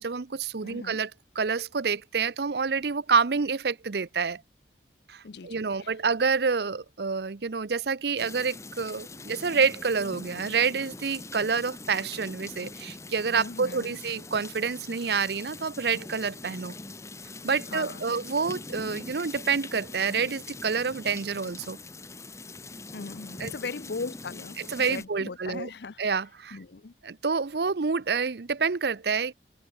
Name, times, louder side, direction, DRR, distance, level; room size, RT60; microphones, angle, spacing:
voice 1, 0.0-4.4 5.1-16.7 17.4-21.8 23.4-23.5 24.6-25.7 26.0-26.6 27.0-29.3, right 5 dB, 65° right, 0.6 m, -28 dB
voice 2, 0.6-1.0 5.2-5.9 13.4-14.0 17.7-18.1 22.9-26.0 26.5-26.9, left 4 dB, 65° left, 0.6 m, -39 dB
sound 1, 8.2-25.0, left 3 dB, 15° left, 0.9 m, -43 dB
head